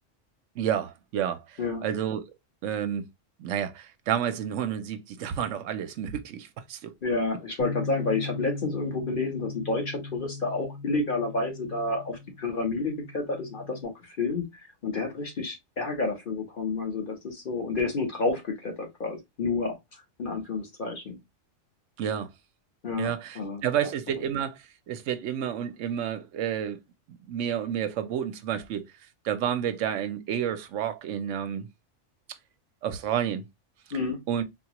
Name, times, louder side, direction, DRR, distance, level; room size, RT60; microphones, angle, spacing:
voice 1, 0.6-2.2 2.6-3.1 3.4-6.9 22.0-22.3 23.0-24.6 24.9-26.8 27.1-28.9 29.2-31.7 32.8-33.4 34.3-34.4, right 9 dB, 80° right, 0.9 m, -30 dB
voice 2, 7.0-14.4 14.8-19.7 20.2-21.1 22.8-23.9 33.9-34.2, left 3 dB, 45° left, 1.0 m, -30 dB
Bass guitar, 7.6-13.8, left 3 dB, 55° right, 0.8 m, -39 dB
4.0 x 2.3 x 2.8 m
omnidirectional pair, 1.3 m